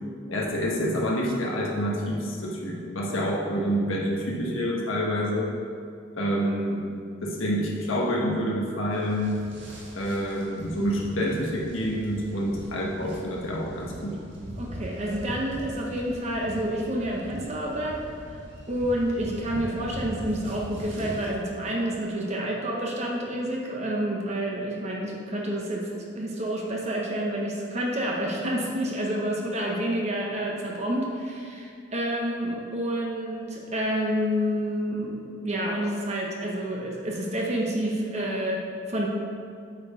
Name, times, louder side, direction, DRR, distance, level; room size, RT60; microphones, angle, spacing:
voice 1, 0.3-5.5 6.2-6.8 7.2-9.3 9.9-14.2, equal, 85° left, -3 dB, 1.3 m, -27 dB
sound 1, 8.9-21.3, equal, 65° right, 1.7 m, -41 dB
voice 2, 14.6-18.0 18.7-39.1, right 1 dB, 35° right, -2 dB, 0.9 m, -29 dB
8.2 x 4.5 x 5.0 m, 2.3 s
head